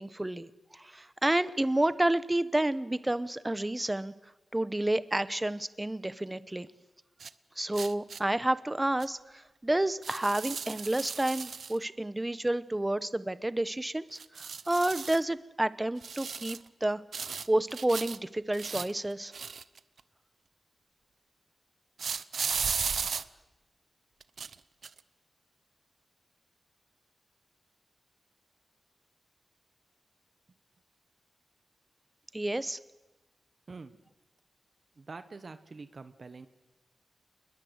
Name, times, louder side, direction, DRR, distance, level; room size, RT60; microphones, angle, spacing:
voice 1, 0.0-4.1 4.5-6.7 7.6-17.0 17.5-19.3 32.3-32.8, right 1 dB, 15° right, 15 dB, 1.0 m, -30 dB
sound 1, 7.2-7.3 7.7-8.2 9.0-9.1 10.0-11.8 14.2-15.2 16.0-16.7 17.1-18.2 18.5-20.0 22.0-23.2 24.2-24.6 24.8-25.0, right 5 dB, 75° right, 0.8 m, -35 dB
voice 2, 33.7-34.0 34.9-36.5, right 4 dB, 50° right, 11 dB, 1.1 m, -45 dB
27.5 x 21.5 x 8.1 m, 1.1 s
wide cardioid pair, 100°, 0 cm